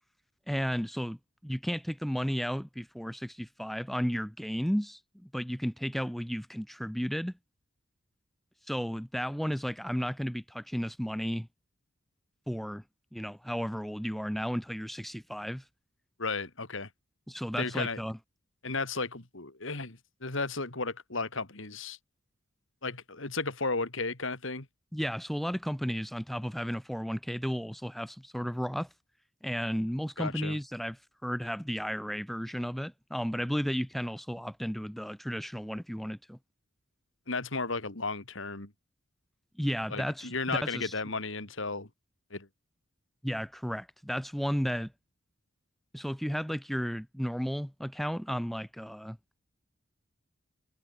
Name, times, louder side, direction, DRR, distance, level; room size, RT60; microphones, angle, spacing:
voice 1, 0.5-1.2 1.4-5.0 5.3-7.3 8.7-11.5 12.5-12.8 13.1-15.6 17.3-18.2 24.9-28.9 29.4-36.4 39.6-40.9 43.2-44.9 45.9-49.4, equal, ahead, 0.7 m, -33 dB
voice 2, 16.2-16.9 17.6-18.0 18.6-22.0 22.8-24.7 30.2-30.6 37.3-38.7 39.9-41.9 42.3-42.5, left 3 dB, 65° left, 2.7 m, -34 dB
head